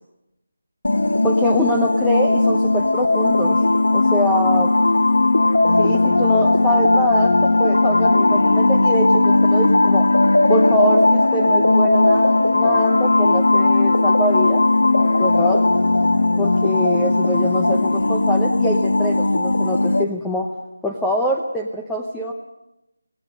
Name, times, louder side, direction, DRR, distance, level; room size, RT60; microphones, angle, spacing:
sound 1, 0.8-20.0, left 2 dB, 75° left, 1.5 m, -17 dB
voice 1, 1.2-3.6 3.9-4.7 5.8-10.1 10.5-15.6 16.4-20.5 20.8-22.3, equal, 5° left, 0 dB, 0.8 m, -24 dB
26.0 x 18.5 x 6.7 m, 0.91 s
figure-of-eight pair, 175°, 0 cm